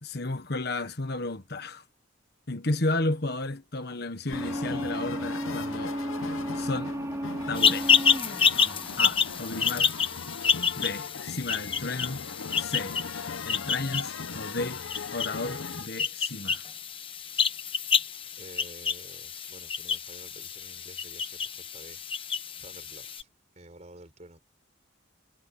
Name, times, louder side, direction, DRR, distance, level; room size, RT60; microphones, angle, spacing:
voice 1, 0.0-1.8 2.5-6.0 6.5-6.9 7.5-7.9 9.0-9.9 10.8-12.2 12.6-13.0 13.4-14.8 15.1-16.6, left 2 dB, 50° left, 1.4 m, -33 dB
sound 1, 4.3-15.9, left 5 dB, 85° left, 0.8 m, -39 dB
sound 2, 4.3-10.7, equal, 15° right, 2.8 m, -35 dB
sound 3, 7.5-23.2, left 6 dB, 25° left, 1.1 m, -28 dB
voice 2, 18.4-22.0 22.6-23.3 23.5-24.4, right 1 dB, 35° right, 4.1 m, -50 dB
head